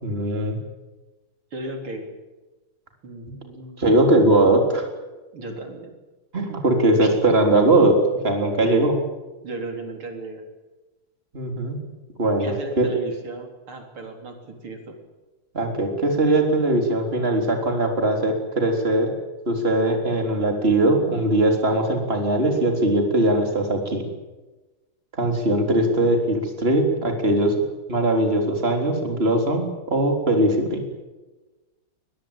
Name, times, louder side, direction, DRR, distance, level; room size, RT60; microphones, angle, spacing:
voice 1, 0.0-0.6 3.8-4.9 6.3-8.0 8.2-8.9 11.3-11.8 12.2-12.9 15.5-19.1 19.5-24.0 25.1-27.5 27.9-30.8, right 1 dB, 25° right, 3 dB, 4.1 m, -20 dB
voice 2, 1.5-2.1 3.0-3.9 5.3-5.9 7.0-7.1 8.6-8.9 9.4-10.5 12.4-15.0, right 2 dB, 85° right, 4 dB, 4.5 m, -35 dB
22.5 x 21.5 x 8.9 m, 1.2 s
omnidirectional pair, 2.3 m